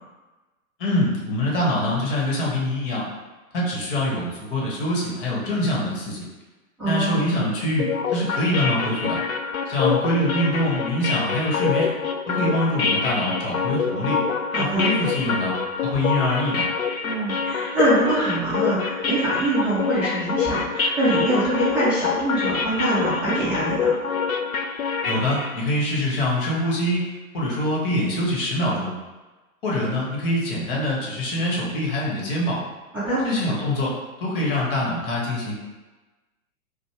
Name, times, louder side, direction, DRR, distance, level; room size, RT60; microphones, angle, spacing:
voice 1, 0.8-3.1 3.5-6.3 6.8-9.2 9.6-11.9 12.3-14.2 14.6-15.5 15.8-16.7 25.0-27.0 27.3-28.9 29.6-32.6 33.2-33.9 34.2-35.5, left 1 dB, 40° left, -4 dB, 1.1 m, -24 dB
voice 2, 6.8-7.3 14.5-14.9 17.0-24.0 32.9-33.2, right 2 dB, 5° right, -15 dB, 0.7 m, -24 dB
sound 1, 7.8-25.6, left 5 dB, 75° left, 0.5 m, -26 dB
5.1 x 2.2 x 3.2 m, 1.2 s
figure-of-eight pair, 110°, 43 cm